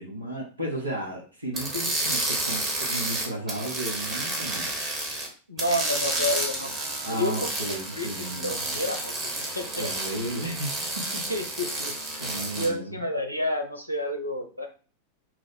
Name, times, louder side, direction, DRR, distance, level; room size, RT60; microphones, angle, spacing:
voice 1, 0.0-5.1 7.0-8.6 9.7-11.2 12.2-13.0, right 1 dB, 85° right, -1 dB, 0.8 m, -34 dB
sound 1, 1.5-5.3 5.6-12.7, right 2 dB, 25° right, 1.0 m, -30 dB
voice 2, 5.5-6.7 7.1-7.3 7.9-9.9 11.3-11.9 12.5-14.7, left 1 dB, 90° left, 4 dB, 0.5 m, -30 dB
2.9 x 2.0 x 3.9 m, 0.37 s
figure-of-eight pair, 90°, 0 cm